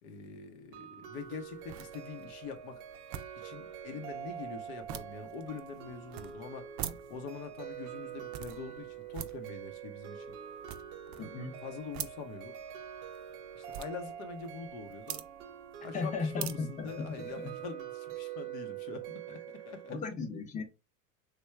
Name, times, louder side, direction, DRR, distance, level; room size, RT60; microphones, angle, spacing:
voice 1, 0.0-2.8 3.4-6.7 7.1-10.3 11.1-11.3 11.6-12.6 13.6-15.2 15.8-20.0, left 5 dB, 75° left, 0.8 m, -44 dB
sound 1, 0.7-19.9, right 9 dB, 80° right, 0.7 m, -45 dB
sound 2, 1.1-17.7, right 11 dB, 45° right, 0.4 m, -47 dB
voice 2, 11.2-11.6 15.9-17.5 19.9-20.6, left 4 dB, 15° left, 0.6 m, -36 dB
3.3 x 2.2 x 3.3 m
hypercardioid pair, 90°, 44 cm